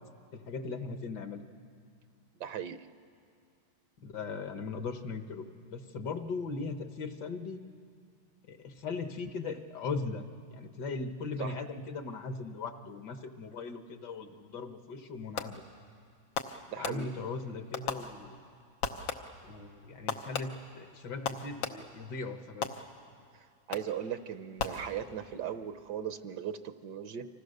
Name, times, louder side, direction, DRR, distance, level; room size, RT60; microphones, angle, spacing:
voice 1, 0.3-1.4 4.0-7.6 8.5-10.2 10.5-15.6 16.8-18.5 19.4-22.7, left 4 dB, 65° left, 7 dB, 1.7 m, -39 dB
voice 2, 2.4-2.8 11.4-11.6 16.7-17.2 23.3-27.3, right 9 dB, 65° right, 10 dB, 1.3 m, -38 dB
Fireworks, 15.4-15.8 16.4-17.4 17.7-18.5 18.8-19.5 20.1-22.1 22.6-23.2 23.7-24.1 24.6-25.3, left 6 dB, 80° left, 1.8 m, -38 dB
28.5 x 25.5 x 6.6 m, 2.3 s
omnidirectional pair, 2.1 m